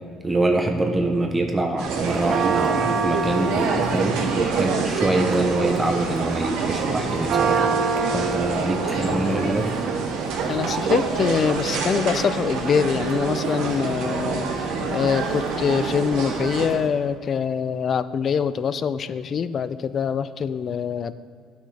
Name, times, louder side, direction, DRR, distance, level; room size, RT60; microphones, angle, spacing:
voice 1, 0.2-7.8 8.1-9.7, right 2 dB, 15° right, 3 dB, 0.7 m, -24 dB
sound 1, 1.8-16.7, right 4 dB, 90° right, 1.5 m, -29 dB
Church bell, 1.9-16.9, right 6 dB, 55° right, 0.6 m, -27 dB
voice 2, 8.8-9.5 10.5-14.5 14.9-21.1, left 7 dB, 40° left, 14 dB, 0.3 m, -24 dB
11.0 x 6.3 x 3.3 m, 2.2 s
cardioid pair, 115°, 0 cm